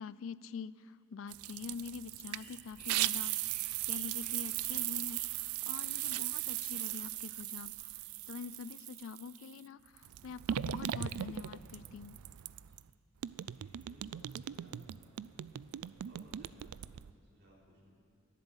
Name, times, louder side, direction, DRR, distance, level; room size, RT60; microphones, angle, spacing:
voice 1, 0.0-3.4 3.6-12.2, left 6 dB, 65° left, 18 dB, 0.3 m, -45 dB
sound 1, 1.3-9.5 10.0-12.9 13.2-17.1, right 13 dB, 85° right, 0.3 m, -38 dB
sound 2, 2.0-6.3 6.7-7.7 8.6-8.7 9.4-9.5 9.8-10.0 12.7-12.8 13.7-13.9, left 1 dB, 5° left, 2.0 m, -60 dB
voice 2, 13.5-17.9, equal, 50° right, -6 dB, 3.8 m, -63 dB
12.0 x 10.5 x 8.9 m, 2.6 s
head